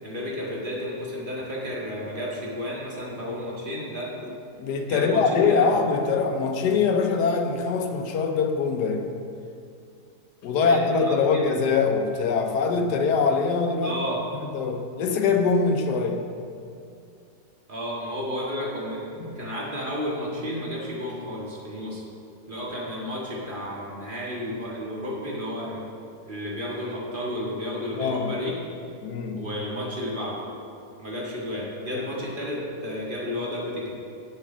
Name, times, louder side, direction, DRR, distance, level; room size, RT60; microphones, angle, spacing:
voice 1, 0.0-4.1 4.9-5.2 5.5-5.7 10.6-11.5 13.8-14.2 17.7-19.1 19.4-22.0 22.5-25.8 26.3-28.6 29.4-30.4 31.0-33.9, equal, 30° right, -5 dB, 1.9 m, -32 dB
voice 2, 4.6-9.1 10.4-14.0 14.5-16.3 19.2-19.4 28.0-28.4 29.0-29.5, left 5 dB, 75° left, 4 dB, 1.4 m, -23 dB
7.8 x 6.8 x 6.2 m, 2.5 s
omnidirectional pair, 1.8 m